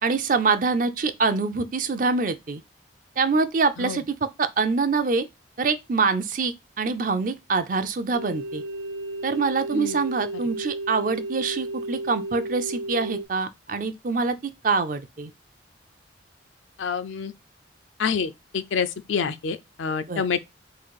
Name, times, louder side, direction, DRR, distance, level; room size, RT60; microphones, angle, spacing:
voice 1, 0.0-2.6 3.2-5.3 5.6-8.6 9.2-15.3 20.1-20.2, right 4 dB, 45° right, 0.5 m, -25 dB
sound 1, 8.1-13.3, right 2 dB, 75° right, 1.1 m, -33 dB
voice 2, 16.8-17.3 18.0-20.4, left 6 dB, 85° left, 0.5 m, -27 dB
3.8 x 2.5 x 4.6 m
head